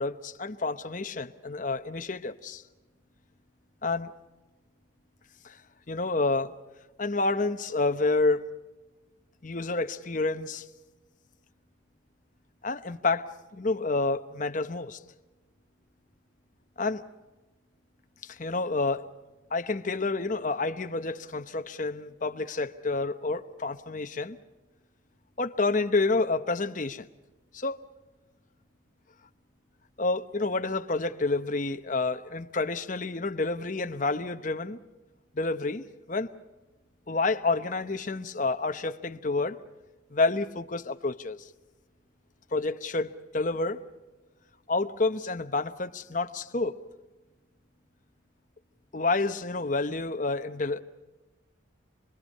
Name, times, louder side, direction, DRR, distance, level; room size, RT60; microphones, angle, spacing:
voice 1, 0.0-2.6 3.8-4.1 5.4-5.6 5.9-6.5 7.0-8.5 9.4-10.7 12.6-13.3 13.5-15.0 16.8-17.0 18.2-19.1 19.5-24.4 25.4-27.1 27.5-27.8 30.0-34.8 35.3-36.3 37.1-39.6 40.1-41.5 42.5-43.8 44.7-46.8 48.9-50.8, left 3 dB, 40° left, 0.9 m, -29 dB
28.0 x 21.0 x 5.5 m
head